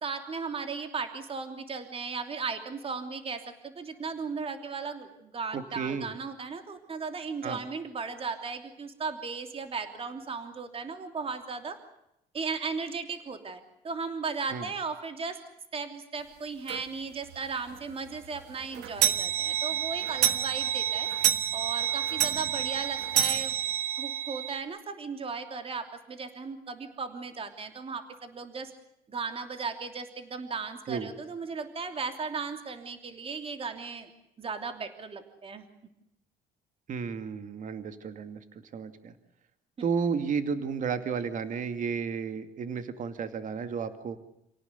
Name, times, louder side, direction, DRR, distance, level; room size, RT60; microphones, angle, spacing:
voice 1, 0.0-11.8 12.3-15.4 15.7-21.1 21.5-23.5 24.0-28.7 29.1-34.1 34.4-35.6 39.8-39.9, right 4 dB, 35° right, 7 dB, 3.1 m, -36 dB
voice 2, 5.5-6.1 7.4-7.6 14.5-14.7 30.9-31.1 36.9-38.4 38.7-39.1 39.8-44.2, right 6 dB, 50° right, 9 dB, 2.3 m, -32 dB
sound 1, 16.7-16.8 17.3-17.4 17.7-17.8 18.2-24.6, right 11 dB, 90° right, 1.5 m, -28 dB
29.0 x 18.0 x 8.2 m, 0.83 s
cardioid pair, 110°, 17 cm